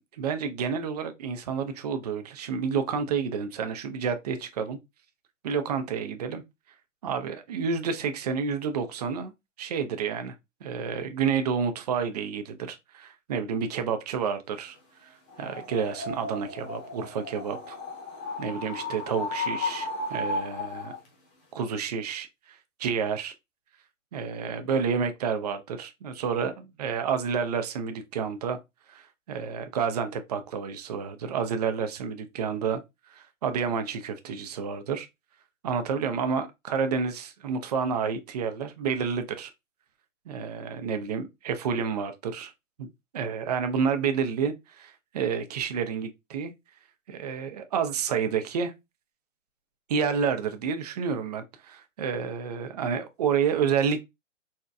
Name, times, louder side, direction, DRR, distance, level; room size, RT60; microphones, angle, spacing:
voice 1, 0.0-4.8 5.4-6.4 7.0-9.3 9.6-10.3 10.6-14.8 15.0-15.1 15.4-17.8 18.4-20.9 21.5-22.3 22.8-23.3 24.1-28.6 28.9-32.8 33.1-35.1 35.6-39.5 40.3-42.5 42.8-42.9 43.1-46.5 47.1-48.7 49.9-54.0, right 6 dB, 35° right, 0.4 m, -29 dB
sound 1, 15.3-21.1, left 2 dB, 30° left, 1.1 m, -34 dB
4.1 x 2.1 x 2.3 m
hypercardioid pair, 135°, 39 cm